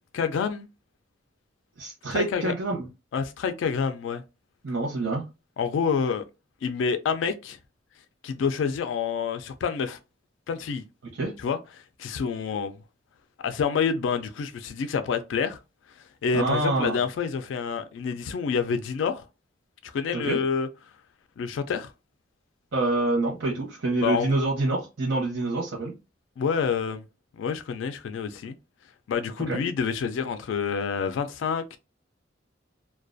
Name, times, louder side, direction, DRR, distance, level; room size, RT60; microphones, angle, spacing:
voice 1, 0.1-0.7 2.1-2.5 3.1-4.2 5.6-6.2 6.6-7.6 8.2-10.0 10.5-10.8 11.4-12.7 13.4-15.6 16.2-19.2 19.8-20.7 21.4-21.9 24.0-24.4 26.4-27.0 27.4-28.5 29.1-31.8, left 6 dB, 80° left, 0.3 m, -28 dB
voice 2, 1.8-2.8 4.6-5.2 11.2-11.3 16.3-17.0 20.1-20.4 22.7-25.9 29.5-29.6, right 2 dB, 80° right, 0.7 m, -26 dB
2.3 x 2.2 x 2.5 m
head